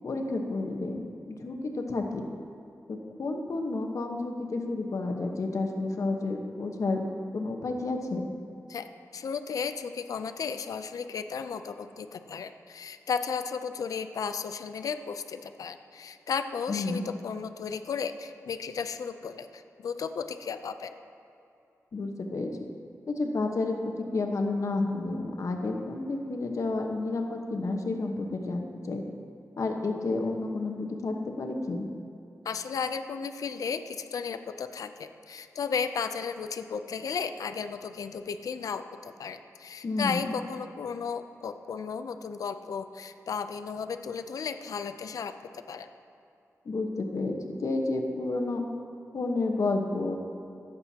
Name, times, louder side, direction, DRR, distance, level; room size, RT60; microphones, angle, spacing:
voice 1, 0.0-2.2 2.9-7.1 7.3-8.3 16.7-17.0 21.9-22.5 23.1-23.8 24.1-29.0 29.6-31.9 39.8-40.3 46.6-47.3 47.6-48.6 49.1-50.2, left 3 dB, 65° left, 3 dB, 1.1 m, -30 dB
voice 2, 9.1-20.9 32.4-45.9, left 6 dB, 85° left, 9 dB, 0.5 m, -34 dB
17.5 x 7.9 x 2.9 m, 2.7 s
cardioid pair, 75°, 6 cm